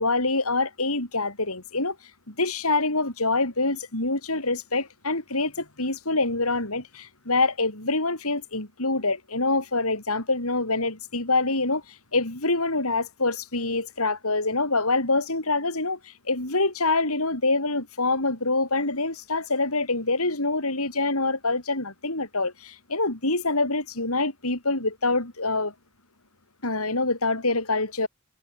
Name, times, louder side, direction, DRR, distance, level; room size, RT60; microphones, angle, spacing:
voice 1, 0.0-1.9 2.3-25.7 26.6-28.1, left 3 dB, 75° left, 6.9 m, -25 dB
head